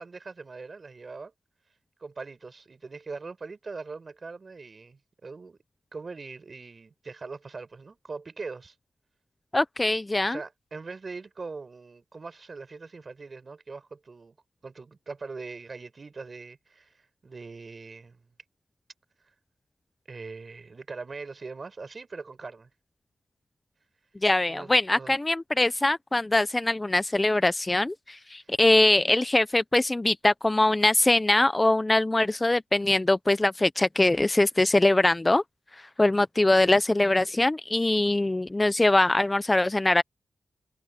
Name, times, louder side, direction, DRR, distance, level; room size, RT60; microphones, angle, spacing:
voice 1, 0.0-1.3 2.0-5.6 5.9-8.7 10.2-14.3 14.6-18.3 20.1-22.7 24.5-25.2, right 4 dB, 40° right, 5.2 m, -41 dB
voice 2, 9.5-10.4 24.2-35.4 36.0-40.0, left 2 dB, 20° left, 0.6 m, -22 dB
wide cardioid pair, 115°, 0 cm